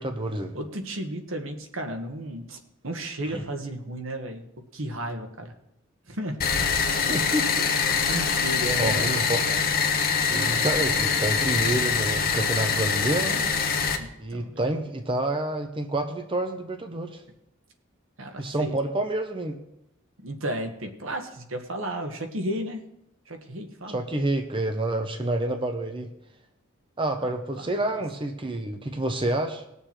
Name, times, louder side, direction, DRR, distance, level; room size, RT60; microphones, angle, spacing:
voice 1, 0.0-0.5 3.3-3.4 6.9-7.8 8.8-9.4 10.3-13.5 14.2-17.2 18.4-19.6 23.9-26.1 27.0-29.6, right 1 dB, 25° right, 5 dB, 0.8 m, -28 dB
voice 2, 0.5-4.4 4.7-5.5 6.1-6.4 7.7-9.2 14.0-14.6 18.2-18.8 20.2-22.8 23.3-24.0 27.2-27.3 27.6-27.7, right 1 dB, 70° right, 5 dB, 1.4 m, -33 dB
sound 1, 6.4-14.0, left 5 dB, 45° left, 1.1 m, -24 dB
19.0 x 6.9 x 4.4 m, 0.84 s
head